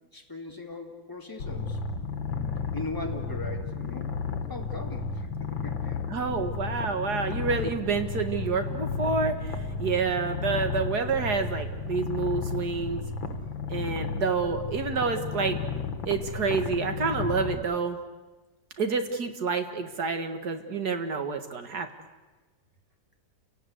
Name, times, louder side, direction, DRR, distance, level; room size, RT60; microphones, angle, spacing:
voice 1, 0.1-1.8 2.7-4.1 4.5-5.3 5.6-6.0, left 2 dB, 10° left, 1 dB, 2.5 m, -39 dB
Purr, 1.4-17.6, left 5 dB, 80° left, 2.3 m, -33 dB
voice 2, 6.1-13.0 13.7-15.6 16.1-18.0 18.8-21.9, right 4 dB, 55° right, 7 dB, 2.3 m, -28 dB
29.5 x 18.0 x 8.2 m, 1.2 s
omnidirectional pair, 2.1 m